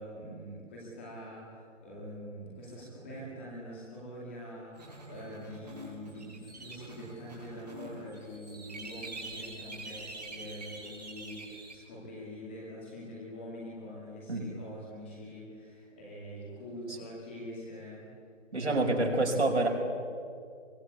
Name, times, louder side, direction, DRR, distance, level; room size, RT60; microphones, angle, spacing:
voice 1, 0.0-18.1 18.5-19.5, equal, 10° left, -4 dB, 2.3 m, -44 dB
sound 1, 4.7-11.7, right 2 dB, 35° right, 6.3 m, -45 dB
voice 2, 18.5-19.7, right 2 dB, 65° right, 1 dB, 5.7 m, -27 dB
24.0 x 21.5 x 8.4 m, 2.4 s
figure-of-eight pair, 175°, 37 cm